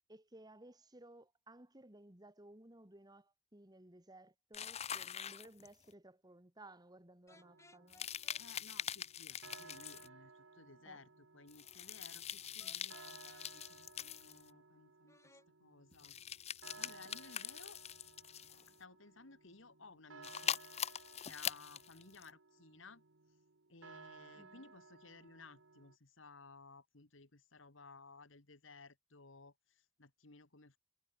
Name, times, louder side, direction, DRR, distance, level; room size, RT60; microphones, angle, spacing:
voice 1, 0.1-8.1 10.9-11.0 24.3-24.7, right 1 dB, 20° right, 2.0 m, -58 dB
sound 1, 4.5-5.9 7.9-10.1 11.5-14.5 15.9-18.7 20.2-22.3, left 9 dB, 30° left, 0.7 m, -43 dB
sound 2, 7.3-8.4 12.6-13.5 15.1-15.5, left 2 dB, 15° left, 4.4 m, -64 dB
sound 3, 7.3-25.9, right 4 dB, 65° right, 1.4 m, -60 dB
voice 2, 8.4-16.2 16.8-17.8 18.7-20.6 21.2-23.0 23.7-30.8, left 3 dB, 70° left, 2.0 m, -58 dB
head